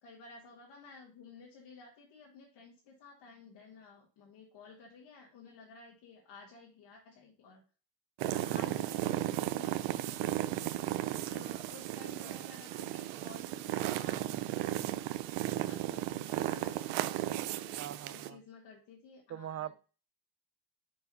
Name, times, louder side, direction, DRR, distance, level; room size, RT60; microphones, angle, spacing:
voice 1, 0.0-7.6 8.2-10.3 10.6-15.0 15.6-17.1 17.6-17.8 18.1-19.7, left 4 dB, 60° left, 2.0 m, -54 dB
sound 1, 8.2-18.3, right 14 dB, 80° right, 0.8 m, -35 dB
voice 2, 17.8-18.4 19.3-19.7, right 11 dB, 35° right, 0.5 m, -41 dB
4.9 x 4.6 x 5.5 m
supercardioid pair, 85°, 46 cm